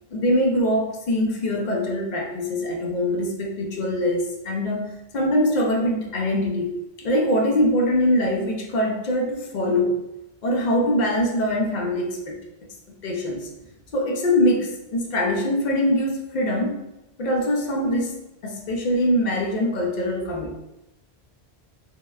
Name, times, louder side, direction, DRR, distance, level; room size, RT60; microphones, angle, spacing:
voice 1, 0.1-6.7 7.0-10.0 10.4-12.4 13.0-13.5 13.9-16.8 17.2-18.2 18.4-20.6, left 1 dB, 55° left, 1 dB, 0.5 m, -23 dB
2.7 x 2.1 x 2.3 m, 0.92 s
omnidirectional pair, 1.1 m